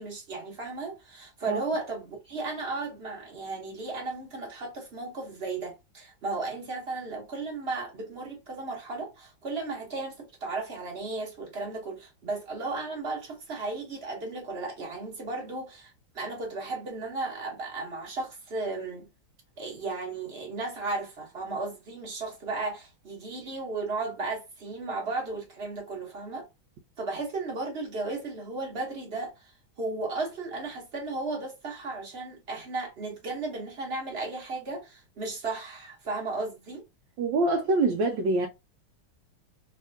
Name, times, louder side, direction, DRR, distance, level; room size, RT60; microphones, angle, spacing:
voice 1, 0.0-19.1 19.6-26.5 27.0-29.3 29.8-36.8, right 3 dB, 40° right, 1.1 m, -35 dB
voice 2, 37.2-38.5, right 2 dB, 75° right, 1.3 m, -25 dB
3.2 x 2.8 x 2.7 m
omnidirectional pair, 2.2 m